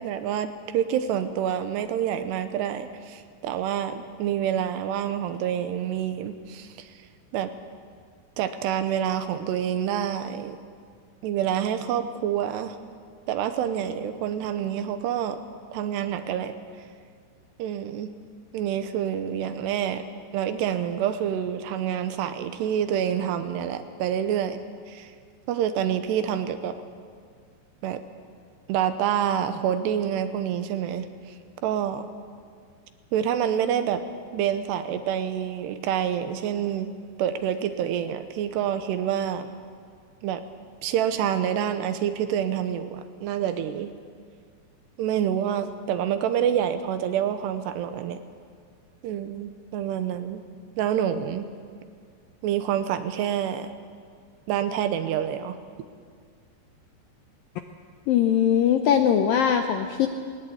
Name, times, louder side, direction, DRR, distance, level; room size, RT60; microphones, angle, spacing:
voice 1, 0.0-6.9 7.3-7.5 8.4-10.6 11.2-12.8 13.3-15.4 15.7-16.5 17.6-18.1 18.5-20.0 20.3-24.6 24.9-25.1 25.5-26.7 27.8-28.0 28.7-31.1 31.6-32.1 33.1-34.0 34.3-36.9 37.2-39.5 40.2-40.4 40.8-43.9 45.0-48.2 49.0-50.4 50.8-51.5 52.4-53.7 54.5-55.6, right 9 dB, 80° right, 10 dB, 3.0 m, -27 dB
voice 2, 58.1-60.1, left 9 dB, 75° left, 6 dB, 2.1 m, -21 dB
19.5 x 19.5 x 8.6 m, 2.1 s
omnidirectional pair, 5.0 m